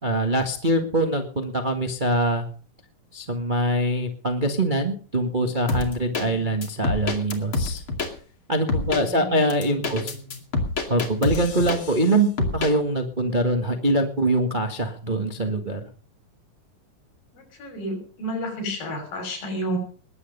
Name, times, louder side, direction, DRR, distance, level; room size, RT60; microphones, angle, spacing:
voice 1, 0.0-2.4 3.1-7.8 8.5-10.0 10.9-15.8, right 1 dB, 35° right, 4 dB, 0.7 m, -23 dB
sound 1, 5.7-6.3 6.6-8.1 8.7-9.0 9.5-12.1 12.4-12.7, left 3 dB, 40° left, 2.9 m, -26 dB
voice 2, 8.8-10.4 17.3-19.8, equal, 90° left, 3 dB, 7.9 m, -32 dB
20.5 x 9.3 x 5.4 m, 0.42 s
omnidirectional pair, 3.9 m